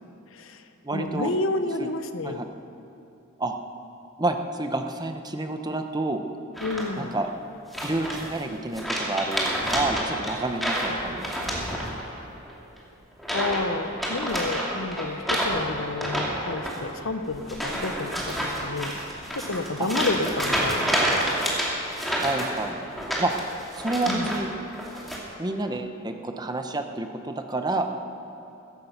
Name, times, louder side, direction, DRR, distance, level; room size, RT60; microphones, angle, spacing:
voice 1, 0.3-0.6 0.9-2.4 6.6-7.1 13.3-19.0 19.3-21.2 24.1-24.3, left 3 dB, 75° left, 9 dB, 0.9 m, -30 dB
voice 2, 0.8-1.3 1.8-1.9 2.2-2.5 3.4-3.6 4.2-6.3 7.0-7.3 7.8-11.7 16.7-16.8 19.8-19.9 22.0-22.8 23.2-23.3 23.8-24.5 25.4-27.9, right 2 dB, 20° right, 5 dB, 0.8 m, -29 dB
sound 1, 6.5-7.1 7.7-8.4 8.7-12.2 12.4-12.8 13.2-13.6 13.9-24.4 24.7-25.2, equal, ahead, 2.5 m, -29 dB
15.5 x 14.5 x 5.8 m, 2.9 s
head